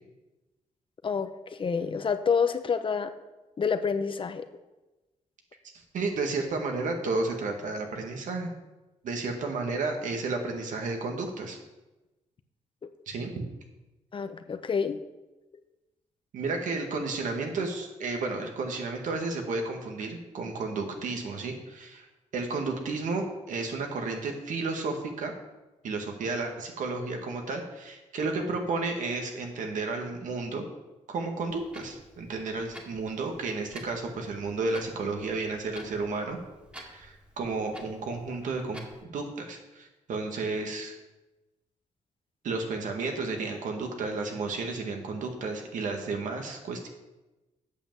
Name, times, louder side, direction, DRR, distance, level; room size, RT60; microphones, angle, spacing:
voice 1, 1.0-3.1 3.6-4.5 12.8-12.9 14.1-15.0, left 6 dB, 40° left, 9 dB, 0.7 m, -28 dB
voice 2, 5.9-8.5 9.0-11.6 13.1-13.3 16.3-22.0 22.3-25.3 25.8-30.6 31.1-36.4 36.8-40.9 42.4-46.9, right 3 dB, 80° right, 3 dB, 1.7 m, -32 dB
Clock, 31.5-39.0, equal, 10° right, 2.0 m, -51 dB
8.4 x 5.7 x 7.5 m, 1.1 s
cardioid pair, 90°, 13 cm